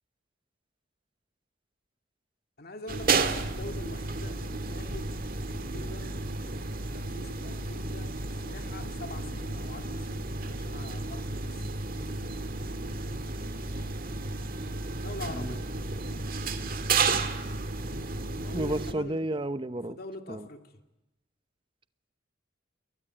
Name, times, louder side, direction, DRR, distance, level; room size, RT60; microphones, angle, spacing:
voice 1, 2.6-5.2 5.5-6.3 6.9-8.2 8.4-12.4 13.2-13.4 14.9-15.7 18.3-19.2 19.9-20.7, left 2 dB, 50° left, 6 dB, 2.3 m, -44 dB
sound 1, 2.9-18.9, right 3 dB, 45° right, 1.9 m, -32 dB
voice 2, 18.5-20.0 20.3-20.5, right 1 dB, 25° right, 13 dB, 0.9 m, -32 dB
28.0 x 22.0 x 9.0 m, 0.98 s
head